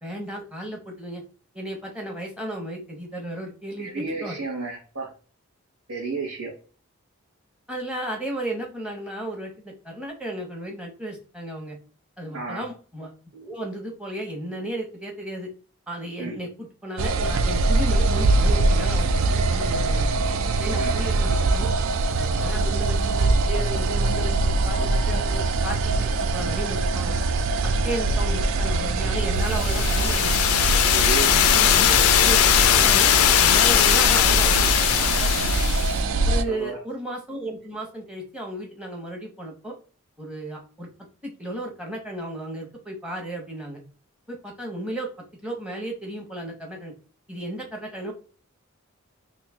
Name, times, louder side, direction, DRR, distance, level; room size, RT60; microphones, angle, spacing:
voice 1, 0.0-1.2 1.5-4.4 7.7-11.8 12.2-15.5 15.9-16.5 16.8-20.1 20.6-21.7 22.0-24.3 24.6-27.1 27.8-30.4 31.2-33.1 33.4-34.7 35.2-35.5 36.2-39.7 40.2-40.9 41.2-43.8 44.3-45.1 45.4-46.9 47.3-48.1, right 1 dB, 5° right, 2 dB, 0.9 m, -34 dB
voice 2, 3.8-5.1 5.9-6.5 12.3-12.6 16.2-16.4 20.8-21.0 30.9-31.7 36.5-36.8, right 4 dB, 90° right, -4 dB, 1.2 m, -32 dB
sound 1, 17.0-36.4, right 3 dB, 65° right, 0.3 m, -23 dB
sound 2, 29.4-36.0, left 11 dB, 75° left, 0.3 m, -19 dB
3.1 x 2.6 x 3.5 m, 0.39 s
head